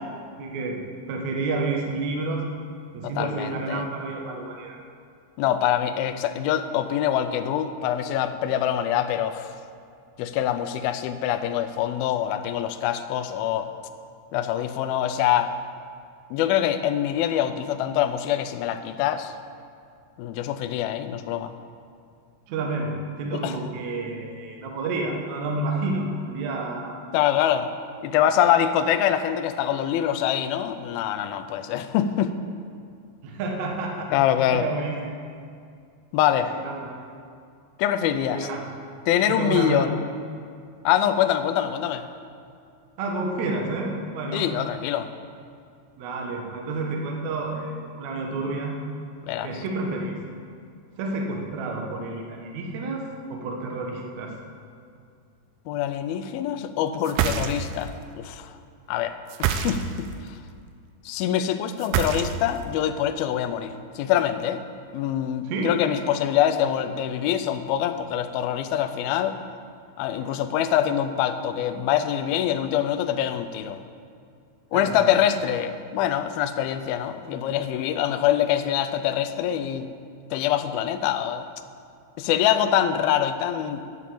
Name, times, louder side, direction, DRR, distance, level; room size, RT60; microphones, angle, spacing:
voice 1, 0.4-0.8 1.1-2.5 2.9-4.8 22.5-27.0 33.2-34.1 34.5-35.2 36.5-37.0 38.3-38.6 39.3-40.0 43.0-44.5 46.0-48.8 49.4-50.1 51.0-54.4 65.5-65.8 70.2-70.3 74.7-75.1, right 3 dB, 70° right, 1 dB, 1.8 m, -30 dB
voice 2, 3.0-3.8 5.4-9.5 10.2-13.7 14.3-15.5 16.3-19.3 20.2-21.5 23.3-23.6 27.1-27.7 28.0-32.3 34.1-34.7 36.1-36.5 37.8-38.5 39.1-39.9 40.9-42.1 44.3-45.1 49.2-49.5 55.7-58.5 58.9-60.3 61.1-64.6 64.9-69.4 70.0-73.8 74.7-79.9 80.3-81.5 82.2-83.8, left 10 dB, 90° left, 7 dB, 2.1 m, -24 dB
sound 1, 57.0-57.9 59.3-60.1 61.8-62.6, right 8 dB, 85° right, 2.1 m, -26 dB
9.2 x 7.1 x 8.4 m, 2.3 s
omnidirectional pair, 5.0 m